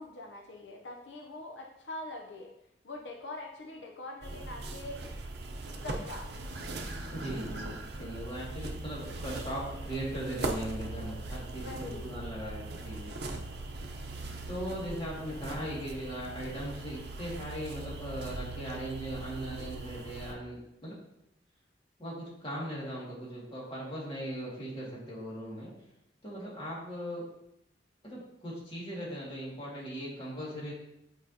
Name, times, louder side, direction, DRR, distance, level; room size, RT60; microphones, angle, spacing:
voice 1, 0.0-2.5 2.8-5.0 5.8-6.3 11.6-12.2, left 2 dB, 85° left, 2 dB, 0.6 m, -43 dB
sound 1, 4.2-20.3, right 2 dB, 65° right, 0.7 m, -40 dB
voice 2, 7.1-13.1 14.5-21.0 22.0-25.7 26.2-27.3 28.0-30.7, equal, 30° left, -6 dB, 2.1 m, -39 dB
8.6 x 4.8 x 2.8 m, 0.84 s
head